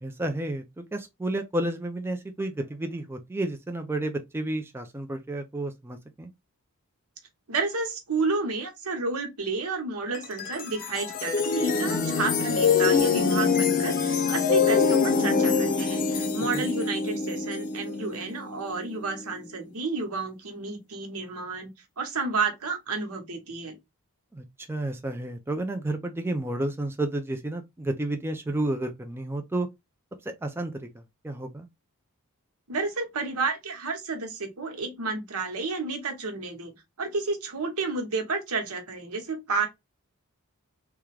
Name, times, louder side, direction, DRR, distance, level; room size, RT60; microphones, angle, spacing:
voice 1, 0.0-6.3 16.5-16.7 24.3-29.7 30.2-31.7, right 1 dB, 10° right, 0.4 m, -31 dB
voice 2, 7.5-21.7 22.0-23.8 32.7-39.7, right 4 dB, 80° right, 1.1 m, -31 dB
sound 1, 10.1-19.4, left 5 dB, 40° left, 0.5 m, -25 dB
3.5 x 2.3 x 3.2 m
head